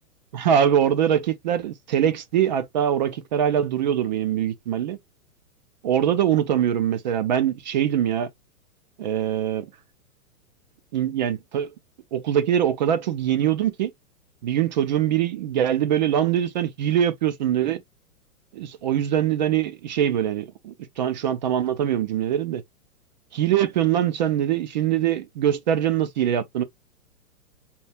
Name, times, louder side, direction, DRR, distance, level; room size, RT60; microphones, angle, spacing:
voice 1, 0.3-5.0 5.8-8.3 9.0-9.7 10.9-11.7 12.1-13.9 14.4-17.8 18.5-22.6 23.3-26.6, right 10 dB, 35° right, 0.4 m, -23 dB
4.3 x 2.4 x 3.3 m
hypercardioid pair, 130°, 43 cm